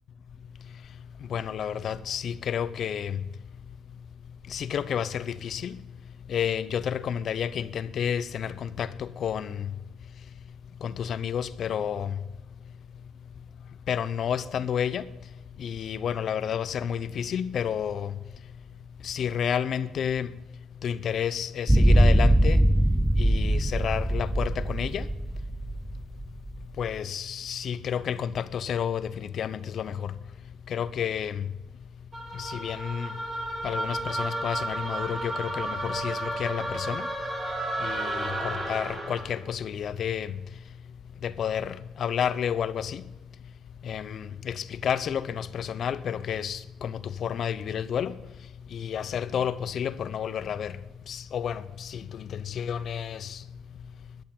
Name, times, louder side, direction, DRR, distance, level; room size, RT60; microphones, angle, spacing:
voice 1, 1.3-3.2 4.5-5.7 6.3-9.6 10.8-12.1 13.9-15.0 15.6-18.1 19.1-20.3 20.8-22.6 23.2-25.0 26.8-29.0 29.4-29.9 30.7-31.3 32.4-33.1 33.6-37.0 37.8-40.3 41.2-41.7 42.0-43.0 43.9-44.5 44.8-46.9 47.2-48.1 48.7-50.7 51.1-51.6 52.6-53.2, left 8 dB, 60° left, 0.8 m, -30 dB
sound 1, 21.7-26.9, right 1 dB, 5° right, 0.6 m, -22 dB
sound 2, 32.1-39.4, right 1 dB, 25° right, 5.2 m, -32 dB
12.5 x 10.0 x 8.6 m
cardioid pair, 85°, 0 cm